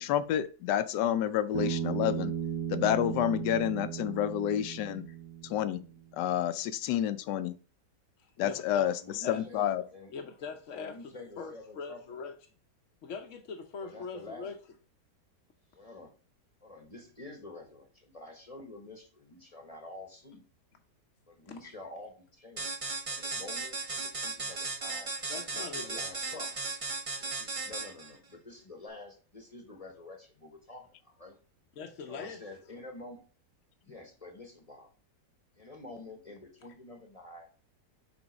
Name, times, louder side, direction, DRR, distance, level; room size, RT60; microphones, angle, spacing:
voice 1, 0.0-2.3 2.7-5.0 5.5-5.8 6.1-7.6 8.4-9.8, left 11 dB, 85° left, 1.2 m, -29 dB
Bass guitar, 1.5-5.9, right 9 dB, 60° right, 1.1 m, -35 dB
voice 2, 8.2-8.9 9.2-9.4 10.1-12.3 13.0-14.5 21.6-21.7 25.3-26.1 31.8-32.4, left 5 dB, 60° left, 0.9 m, -42 dB
voice 3, 9.0-10.1 10.7-12.0 13.8-14.5 15.7-16.1 16.6-20.4 21.3-22.8 23.1-25.1 25.7-26.5 27.2-31.4 32.1-33.2 33.8-34.9 35.6-37.5, left 2 dB, 25° left, 0.9 m, -48 dB
sound 1, 22.6-28.1, right 3 dB, 40° right, 0.5 m, -36 dB
6.1 x 3.6 x 5.1 m
omnidirectional pair, 1.8 m